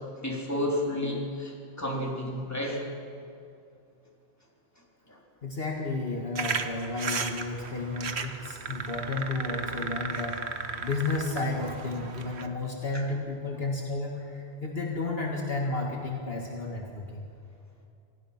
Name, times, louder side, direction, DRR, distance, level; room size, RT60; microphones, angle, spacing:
voice 1, 0.2-2.8, left 1 dB, 15° left, -2 dB, 3.6 m, -31 dB
voice 2, 5.4-17.3, left 3 dB, 55° left, 0 dB, 2.1 m, -32 dB
sound 1, 6.4-12.5, right 5 dB, 65° right, 1.4 m, -35 dB
25.5 x 17.0 x 5.9 m, 2.5 s
omnidirectional pair, 1.2 m